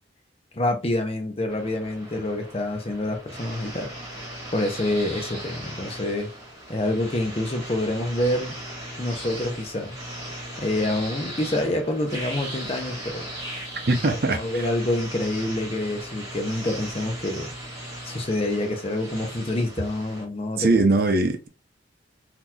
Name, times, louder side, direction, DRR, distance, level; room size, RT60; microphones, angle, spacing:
voice 1, 0.5-3.9 4.5-6.3 6.7-8.5 9.0-9.9 10.6-13.2 14.3-17.5 18.0-20.8, left 1 dB, 30° left, 0.7 m, -27 dB
sound 1, 1.5-20.2, right 1 dB, 15° right, 1.9 m, -38 dB
voice 2, 13.9-14.7 20.6-21.5, right 2 dB, 50° right, 0.6 m, -21 dB
3.8 x 2.9 x 2.3 m
head